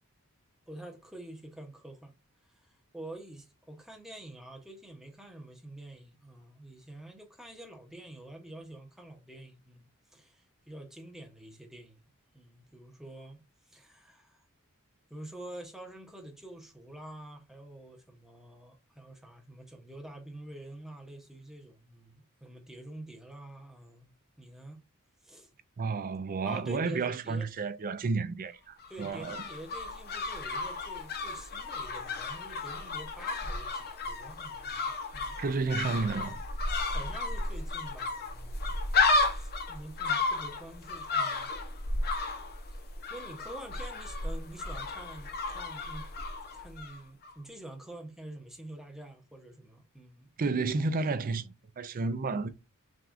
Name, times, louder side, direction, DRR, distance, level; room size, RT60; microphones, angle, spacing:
voice 1, 0.7-2.1 2.6-12.0 12.3-13.4 13.7-14.5 15.1-24.1 24.4-24.8 25.2-25.5 26.4-27.5 28.9-35.4 36.9-38.7 39.3-41.5 42.7-46.1 46.5-50.3, right 1 dB, ahead, 0.8 m, -47 dB
voice 2, 25.8-29.4 35.4-36.4 50.4-52.5, right 4 dB, 40° right, 0.4 m, -31 dB
sound 1, 28.8-47.0 47.2-47.3, left 3 dB, 45° left, 0.7 m, -33 dB
5.9 x 2.4 x 2.5 m
head